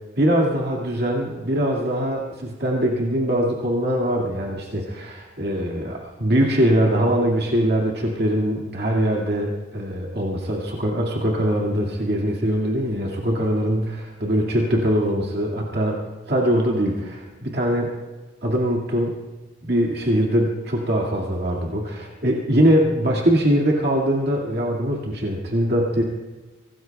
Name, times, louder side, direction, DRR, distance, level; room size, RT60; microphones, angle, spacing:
voice 1, 0.2-16.0 16.3-17.9 18.4-19.1 19.6-26.0, equal, 55° right, -2 dB, 2.1 m, -22 dB
24.5 x 19.0 x 2.3 m, 1.3 s
head